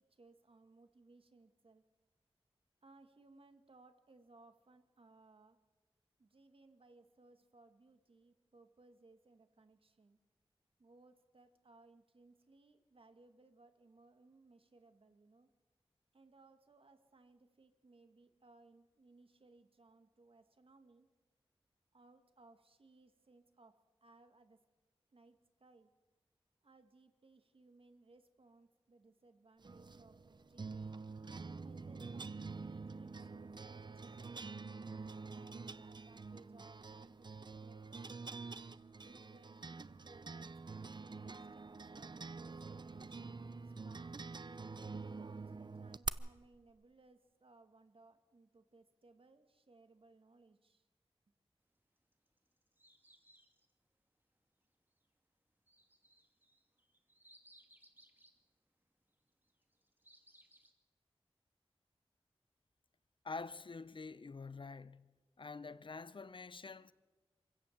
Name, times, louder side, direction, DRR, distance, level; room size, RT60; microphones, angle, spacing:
voice 1, 0.0-1.8 2.8-5.6 6.2-10.2 10.8-15.5 16.1-21.1 21.9-24.6 25.1-25.9 26.6-31.0 31.6-34.5 35.3-38.5 39.0-44.2 45.0-50.8, right 3 dB, 65° right, 2.0 m, -64 dB
sound 1, 29.6-46.1, right 4 dB, 45° right, 0.6 m, -47 dB
sound 2, 52.1-53.7 55.7-58.4 59.5-60.7, right 1 dB, 20° right, 2.7 m, -65 dB
voice 2, 63.2-65.1 65.4-66.9, left 4 dB, 55° left, 0.7 m, -47 dB
26.0 x 16.5 x 7.4 m
wide cardioid pair, 60°, 10 cm